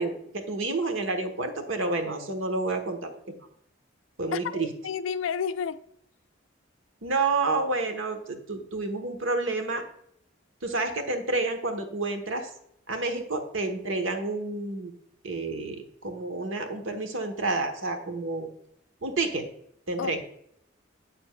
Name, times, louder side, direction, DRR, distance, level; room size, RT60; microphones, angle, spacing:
voice 1, 0.0-3.3 4.2-4.7 7.0-9.8 10.6-12.5 12.9-14.9 15.2-18.5 19.0-19.5 19.9-20.2, right 3 dB, 85° right, 1.1 m, -29 dB
voice 2, 4.3-5.8 20.0-20.2, left 7 dB, 80° left, 0.4 m, -31 dB
7.8 x 6.8 x 2.2 m
head